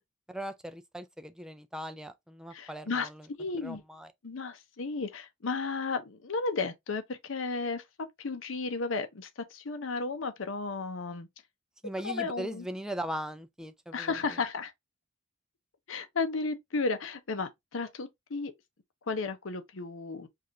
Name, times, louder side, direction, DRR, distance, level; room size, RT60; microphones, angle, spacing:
voice 1, 0.3-3.3 3.6-4.1 11.8-14.1, right 1 dB, 5° right, 0.3 m, -39 dB
voice 2, 2.5-3.1 3.4-3.8 4.2-7.8 8.2-11.3 12.0-12.7 13.9-14.7 15.9-18.5 19.1-20.3, left 4 dB, 80° left, 0.7 m, -33 dB
4.7 x 2.5 x 2.6 m
head